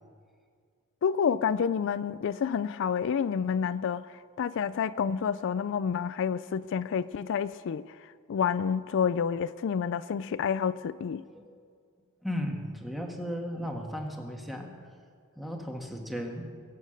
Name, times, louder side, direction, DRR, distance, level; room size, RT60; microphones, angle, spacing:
voice 1, 1.0-11.2, left 7 dB, 60° left, 0.3 m, -29 dB
voice 2, 11.2-11.6 12.2-14.7 15.3-16.5, equal, ahead, 1.7 m, -35 dB
21.5 x 8.5 x 6.4 m
head